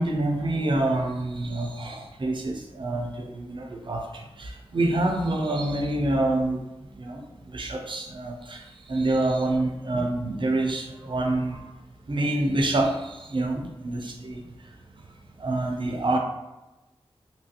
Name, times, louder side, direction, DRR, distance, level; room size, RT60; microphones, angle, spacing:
voice 1, 0.0-11.7 12.1-15.0 15.4-16.2, right 2 dB, 50° right, 2 dB, 0.5 m, -27 dB
2.8 x 2.4 x 2.8 m, 0.99 s
cardioid pair, 50°, 11 cm